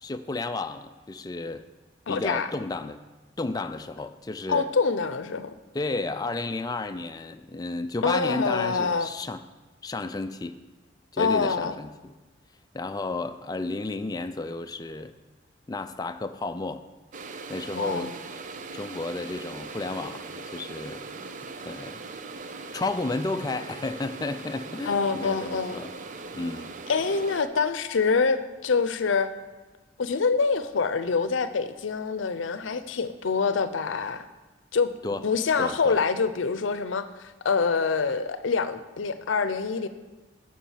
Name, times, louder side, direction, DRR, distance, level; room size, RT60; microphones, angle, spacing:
voice 1, 0.0-1.6 2.1-3.0 3.4-4.7 5.7-9.4 9.8-10.6 11.1-12.1 12.7-15.1 15.7-16.8 17.5-18.2 18.7-21.3 21.6-22.0 22.7-25.9 26.3-26.7 35.0-35.3 35.6-36.0, left 3 dB, 20° left, 9 dB, 0.4 m, -32 dB
voice 2, 2.1-2.5 4.5-5.5 8.0-9.1 11.2-11.7 17.7-18.1 24.9-25.8 26.9-29.3 30.0-34.3 34.7-34.9 35.2-39.9, left 5 dB, 85° left, 12 dB, 0.6 m, -25 dB
sound 1, 17.1-27.4, right 4 dB, 40° right, 0.5 m, -40 dB
7.2 x 6.1 x 7.3 m, 1.2 s
head